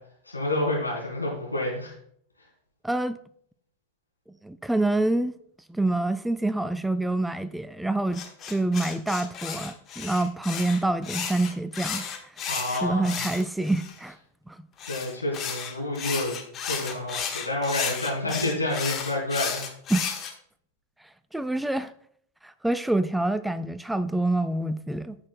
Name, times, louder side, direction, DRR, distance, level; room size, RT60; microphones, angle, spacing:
voice 1, 0.2-1.9 12.5-13.2 14.8-19.7, left 1 dB, 85° left, 3.5 m, -29 dB
voice 2, 2.8-3.2 4.4-5.3 5.7-12.3 12.7-14.2 14.5-14.6 19.9-20.1 21.3-21.9 22.4-25.2, right 2 dB, 5° right, 0.3 m, -27 dB
sound 1, 8.1-14.0 14.8-20.3, left 7 dB, 30° left, 1.1 m, -33 dB
14.5 x 6.2 x 2.2 m
figure-of-eight pair, 90°, 0 cm